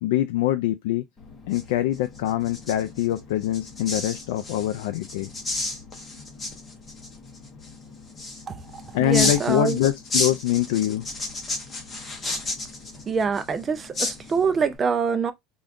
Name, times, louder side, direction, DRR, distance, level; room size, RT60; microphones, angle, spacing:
voice 1, 0.0-1.0 1.5-5.3 8.9-11.0, left 13 dB, 85° left, 0.3 m, -24 dB
sound 1, 1.2-14.8, left 2 dB, 20° left, 0.7 m, -33 dB
voice 2, 9.0-9.8 13.1-15.3, right 5 dB, 20° right, 0.4 m, -24 dB
3.6 x 2.3 x 2.5 m
cardioid pair, 155°, 0 cm